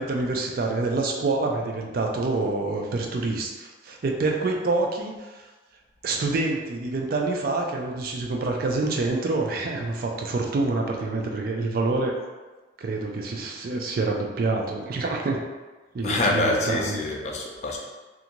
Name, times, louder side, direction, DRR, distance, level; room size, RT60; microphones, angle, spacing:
voice 1, 0.0-5.4 6.0-12.2 12.8-15.4 15.9-17.0, right 3 dB, 50° right, 1 dB, 0.4 m, -27 dB
voice 2, 16.0-17.8, left 2 dB, 40° left, 0 dB, 0.4 m, -25 dB
2.6 x 2.4 x 2.9 m, 1.2 s
head